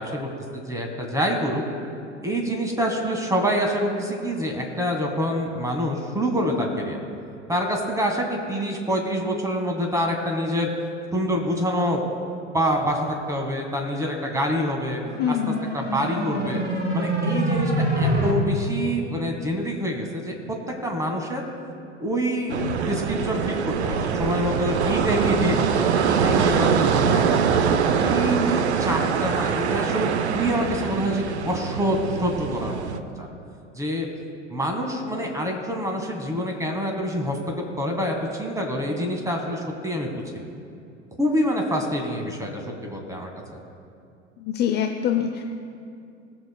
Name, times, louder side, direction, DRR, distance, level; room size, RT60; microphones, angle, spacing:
voice 1, 0.0-1.6 2.2-7.0 7.5-10.7 11.1-12.0 12.5-15.0 15.3-16.6 16.9-20.6 20.8-21.5 22.0-27.2 28.0-32.8 33.2-33.3 33.7-34.1 34.5-40.2 41.2-43.3, equal, 10° right, 2 dB, 1.7 m, -26 dB
sound 1, 15.0-18.3, right 1 dB, 25° right, 1.9 m, -25 dB
voice 2, 15.2-15.6 44.4-45.4, left 9 dB, 30° left, 4 dB, 0.7 m, -24 dB
sound 2, 22.5-33.0, right 6 dB, 65° right, 0.7 m, -23 dB
21.0 x 7.1 x 2.3 m, 2.5 s
figure-of-eight pair, 80°, 36 cm